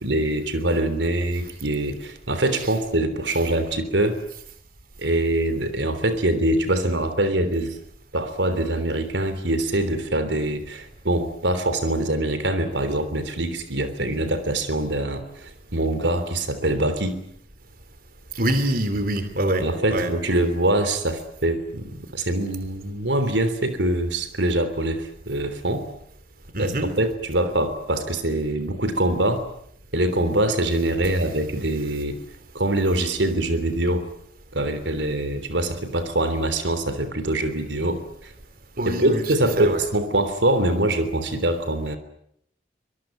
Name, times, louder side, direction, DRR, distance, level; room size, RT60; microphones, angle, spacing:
voice 1, 0.0-4.2 5.0-7.8 8.1-17.2 19.6-25.9 26.6-29.4 29.9-32.2 32.6-34.1 34.5-38.3 38.9-42.0, right 1 dB, 90° right, 11 dB, 3.4 m, -24 dB
voice 2, 18.3-19.6 19.9-20.1 26.5-26.9 38.8-39.2 39.6-39.8, right 1 dB, 55° right, 10 dB, 3.2 m, -24 dB
25.0 x 22.0 x 9.1 m, 0.71 s
head